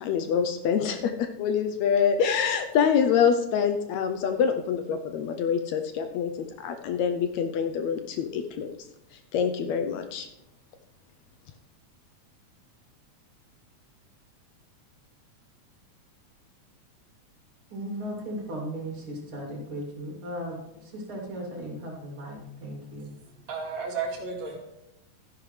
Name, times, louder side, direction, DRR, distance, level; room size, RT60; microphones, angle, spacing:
voice 1, 0.0-1.1 1.4-6.3 6.6-8.7 9.3-10.3, left 7 dB, 75° left, 7 dB, 1.8 m, -25 dB
voice 2, 17.7-23.1, equal, 45° right, -2 dB, 3.4 m, -36 dB
voice 3, 23.5-24.6, right 5 dB, 65° right, 0 dB, 3.0 m, -32 dB
13.0 x 10.5 x 3.3 m, 0.85 s
omnidirectional pair, 3.5 m